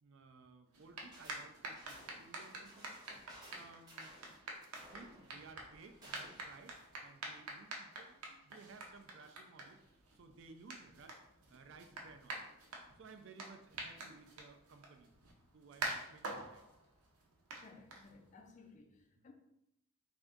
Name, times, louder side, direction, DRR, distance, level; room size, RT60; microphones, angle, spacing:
voice 1, 0.0-3.2 3.5-4.1 4.9-9.8 10.1-12.5 13.0-15.1 15.5-16.6 18.3-18.4 19.1-19.3, right 4 dB, 60° right, 7 dB, 0.4 m, -58 dB
sound 1, 0.7-18.5, right 2 dB, 90° right, 0.7 m, -48 dB
sound 2, 1.1-1.5 1.8-6.6, right 1 dB, 20° right, 0.8 m, -58 dB
voice 2, 17.6-19.3, left 3 dB, 35° left, 3 dB, 0.3 m, -59 dB
3.4 x 2.6 x 3.7 m, 0.80 s
head